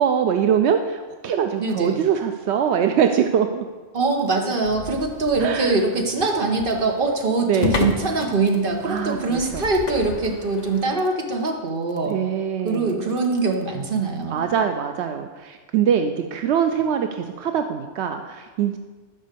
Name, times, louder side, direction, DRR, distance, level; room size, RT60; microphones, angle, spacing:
voice 1, 0.0-3.6 5.4-5.8 7.5-7.8 8.8-9.6 12.1-13.1 14.3-18.8, right 8 dB, 80° right, 6 dB, 0.9 m, -23 dB
voice 2, 1.6-2.0 3.9-12.2 12.6-14.4, right 3 dB, 50° right, 2 dB, 1.4 m, -23 dB
sound 1, 4.6-10.9, left 3 dB, 40° left, 0.9 m, -31 dB
11.0 x 5.3 x 6.8 m, 1.4 s
omnidirectional pair, 1.1 m